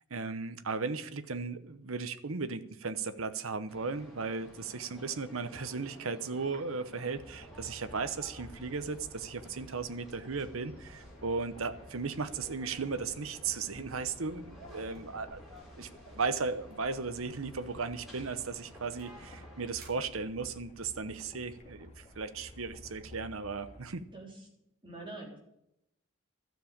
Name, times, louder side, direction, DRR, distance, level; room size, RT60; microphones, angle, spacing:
voice 1, 0.1-15.4 15.8-24.0, right 4 dB, 80° right, 12 dB, 0.9 m, -36 dB
sound 1, 3.7-19.7, equal, ahead, 4.1 m, -54 dB
sound 2, 7.1-23.9, left 1 dB, 35° left, 2.2 m, -53 dB
sound 3, 14.9-15.2 15.5-15.8 16.0-16.1 16.7-16.9 17.3-17.6 18.1-19.2 19.8-20.7, right 4 dB, 45° right, 3.5 m, -62 dB
voice 2, 24.1-24.5 24.8-25.4, right 2 dB, 25° right, -1 dB, 3.6 m, -45 dB
12.5 x 7.2 x 8.7 m, 0.81 s
head